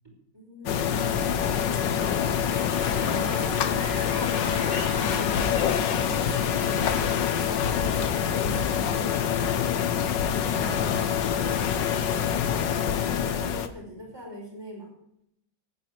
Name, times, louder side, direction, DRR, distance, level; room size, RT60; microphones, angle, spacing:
voice 1, 0.3-1.4 3.1-4.8 5.0-5.6 5.9-9.3 12.4-15.0, equal, 15° right, -2 dB, 5.5 m, -41 dB
sound 1, 0.7-13.7, left 8 dB, 85° left, 1.7 m, -26 dB
voice 2, 1.4-2.5 10.5-11.7, left 2 dB, 60° left, 3 dB, 2.6 m, -38 dB
sound 2, 2.4-8.9, right 1 dB, 35° right, 3.6 m, -42 dB
sound 3, 3.8-7.8, equal, 30° left, 4.5 m, -44 dB
11.0 x 9.5 x 9.3 m, 0.74 s
omnidirectional pair, 1.9 m